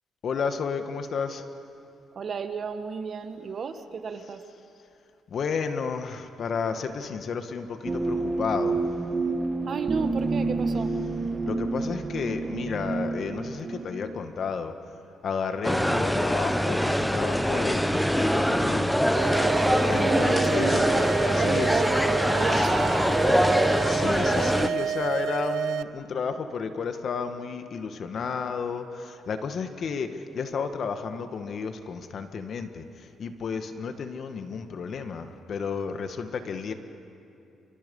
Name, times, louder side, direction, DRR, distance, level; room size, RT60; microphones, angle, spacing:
voice 1, 0.2-1.4 5.3-9.0 11.4-14.7 15.2-19.1 19.9-20.8 21.3-21.8 22.5-22.7 23.8-36.7, left 5 dB, 55° left, 7 dB, 1.7 m, -32 dB
voice 2, 2.1-4.4 9.7-10.9 20.0-21.9 22.3-23.6, right 5 dB, 50° right, 8 dB, 1.6 m, -33 dB
sound 1, 7.8-13.9, right 3 dB, 30° right, 1.8 m, -29 dB
sound 2, 15.6-24.7, equal, ahead, 1.0 m, -23 dB
sound 3, 19.2-25.8, right 9 dB, 80° right, 0.5 m, -30 dB
28.5 x 25.5 x 5.5 m, 2.7 s
cardioid pair, 90°, 0 cm